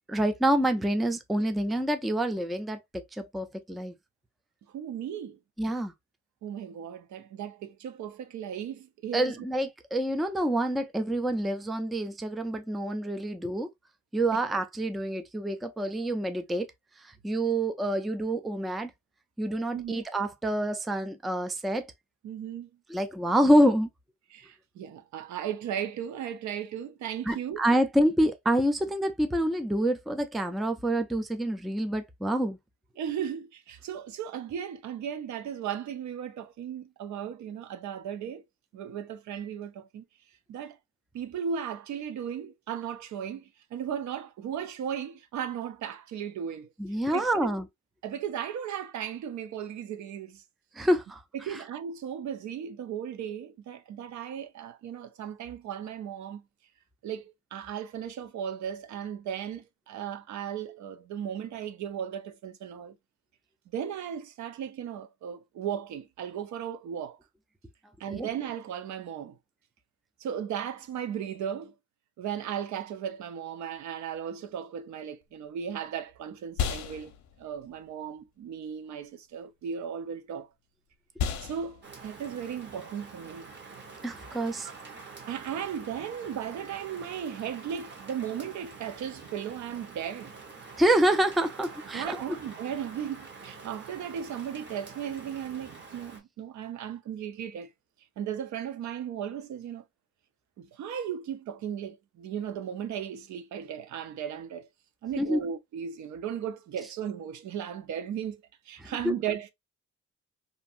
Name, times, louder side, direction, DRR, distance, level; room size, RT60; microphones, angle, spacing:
voice 1, 0.1-3.9 5.6-5.9 9.1-13.7 14.1-16.7 17.0-18.9 19.4-21.9 22.9-23.9 27.3-32.6 46.8-47.7 50.8-51.2 51.5-51.6 68.1-68.3 84.0-84.7 90.8-92.2 105.2-105.4 108.8-109.1, right 1 dB, ahead, 0.3 m, -27 dB
voice 2, 4.7-5.4 6.4-9.4 14.3-14.4 19.7-20.0 22.2-22.7 24.3-27.6 33.0-38.4 38.7-40.0 40.5-40.8 41.1-46.7 47.1-47.5 48.0-50.4 51.3-56.4 57.0-63.0 63.7-67.2 68.0-69.4 70.2-71.7 72.2-80.5 81.4-83.5 85.3-90.4 91.9-97.7 98.2-99.8 100.6-104.7 105.0-109.5, right 8 dB, 70° right, 0.6 m, -36 dB
sound 1, 75.2-84.8, left 8 dB, 70° left, 0.6 m, -38 dB
Rain, 81.8-96.2, right 4 dB, 35° right, 1.1 m, -46 dB
2.6 x 2.6 x 2.4 m
cardioid pair, 90°, 30 cm